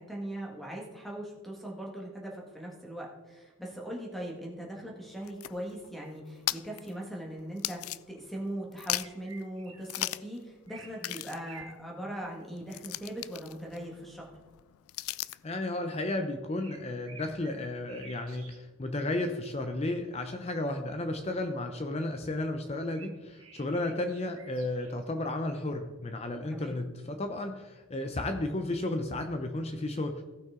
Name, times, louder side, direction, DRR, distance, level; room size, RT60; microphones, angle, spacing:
voice 1, 0.0-14.3 26.5-26.8, right 1 dB, ahead, -2 dB, 1.7 m, -40 dB
sound 1, 5.0-8.5 8.7-9.3 9.8-10.4 10.7-10.8 11.0-15.5, left 16 dB, 85° left, 0.3 m, -38 dB
sound 2, 8.9-10.3 10.7-11.7 16.6-18.6 19.0-19.3 22.7-25.1, right 5 dB, 85° right, 1.9 m, -52 dB
voice 2, 15.4-30.2, left 2 dB, 30° left, 6 dB, 0.6 m, -33 dB
16.0 x 6.0 x 3.7 m, 1.2 s
head